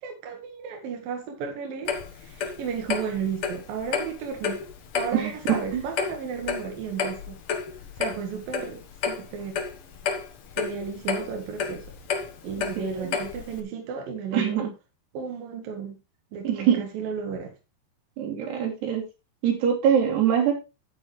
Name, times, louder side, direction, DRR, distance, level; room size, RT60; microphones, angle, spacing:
voice 1, 0.0-4.6 4.9-7.4 8.0-9.6 10.6-11.8 12.4-14.6 15.1-16.0 16.3-17.5, right 6 dB, 65° right, 3.1 m, -34 dB
Clock, 1.9-13.6, left 6 dB, 85° left, 1.2 m, -31 dB
voice 2, 5.1-5.8 12.8-13.2 14.3-14.7 16.4-16.8 18.2-19.0 19.4-20.6, right 8 dB, 80° right, 5.0 m, -24 dB
11.0 x 9.0 x 3.2 m
omnidirectional pair, 4.7 m